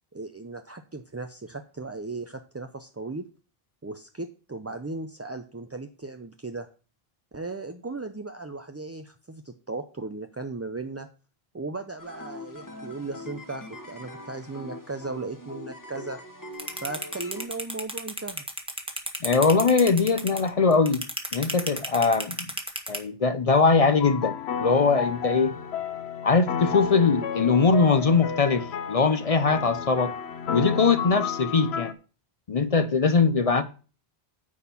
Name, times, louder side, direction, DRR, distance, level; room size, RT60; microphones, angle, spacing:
voice 1, 0.1-3.3 3.8-6.7 7.3-11.1 11.5-16.2 16.8-18.4, right 3 dB, 25° right, 0.3 m, -36 dB
sound 1, 12.0-17.5, left 1 dB, 20° left, 1.2 m, -42 dB
sound 2, 16.6-23.0, right 1 dB, 5° right, 1.2 m, -31 dB
voice 2, 19.2-21.0 21.3-22.5 22.9-25.6 26.2-30.1 30.5-31.9 32.5-33.6, left 4 dB, 45° left, 0.6 m, -21 dB
sound 3, 24.0-31.9, left 7 dB, 85° left, 1.0 m, -32 dB
9.5 x 4.3 x 7.0 m
omnidirectional pair, 1.0 m